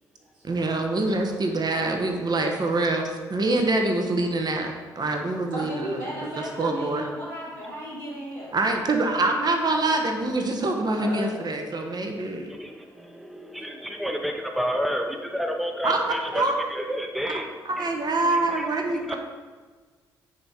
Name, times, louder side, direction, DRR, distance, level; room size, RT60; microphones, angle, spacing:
voice 1, 0.4-6.3 6.6-7.0 8.5-12.5 15.8-16.6 17.6-19.2, right 2 dB, 40° right, 3 dB, 1.0 m, -25 dB
voice 2, 5.5-8.5 10.9-11.4 12.9-13.0, right 1 dB, 90° right, -6 dB, 1.6 m, -34 dB
voice 3, 12.5-17.5 17.8-17.9 18.3-18.6 19.1-19.2, equal, ahead, 4 dB, 0.7 m, -30 dB
9.2 x 3.5 x 4.3 m, 1.4 s
hypercardioid pair, 40°, 11 cm